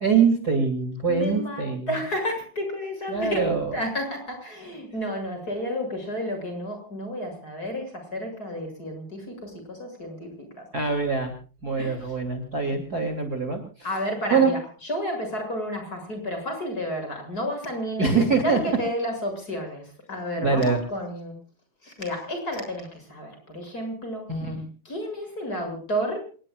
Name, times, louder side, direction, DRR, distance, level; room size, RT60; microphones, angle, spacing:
voice 1, 0.0-1.9 3.1-3.7 10.7-11.3 11.6-13.9 14.3-14.5 18.0-18.6 20.4-20.8 24.3-24.6, right 5 dB, 30° right, 5 dB, 3.3 m, -23 dB
voice 2, 1.1-10.6 11.8-12.1 13.8-18.1 18.4-21.4 21.8-24.3 24.8-26.3, equal, 25° left, 4 dB, 8.0 m, -31 dB
27.5 x 20.5 x 2.5 m, 0.39 s
omnidirectional pair, 3.6 m